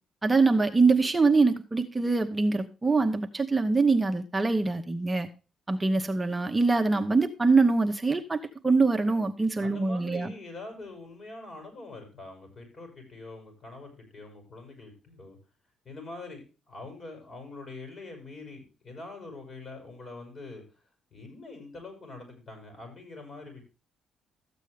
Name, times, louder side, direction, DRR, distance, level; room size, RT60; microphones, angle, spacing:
voice 1, 0.2-5.3 5.7-10.3, right 3 dB, 20° right, 5 dB, 0.9 m, -24 dB
voice 2, 9.6-15.4 15.8-20.6 21.1-23.6, left 3 dB, 45° left, 5 dB, 6.5 m, -44 dB
13.5 x 8.2 x 3.3 m, 0.32 s
cardioid pair, 90°, 0 cm